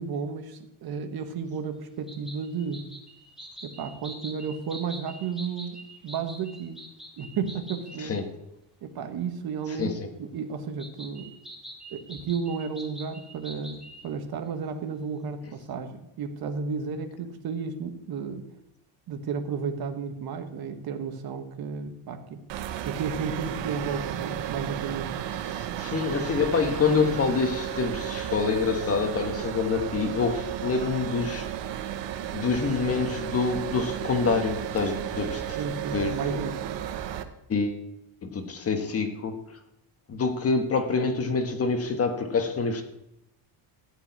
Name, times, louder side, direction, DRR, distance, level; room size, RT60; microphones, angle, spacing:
voice 1, 0.0-2.9 3.6-6.8 7.2-8.2 8.8-9.9 10.2-11.3 11.9-18.4 19.1-22.4 22.8-25.2 35.6-36.8, right 6 dB, 50° right, 7 dB, 1.5 m, -33 dB
sound 1, 2.1-8.0 10.8-14.0, right 1 dB, ahead, 2.5 m, -45 dB
sound 2, 22.5-37.2, right 11 dB, 70° right, 1.2 m, -33 dB
voice 2, 25.5-31.5 32.3-35.6 35.9-36.4 37.5-37.8 38.2-39.6 40.1-42.8, left 4 dB, 30° left, 6 dB, 1.6 m, -26 dB
15.0 x 5.3 x 9.4 m, 0.85 s
cardioid pair, 160°, 45 cm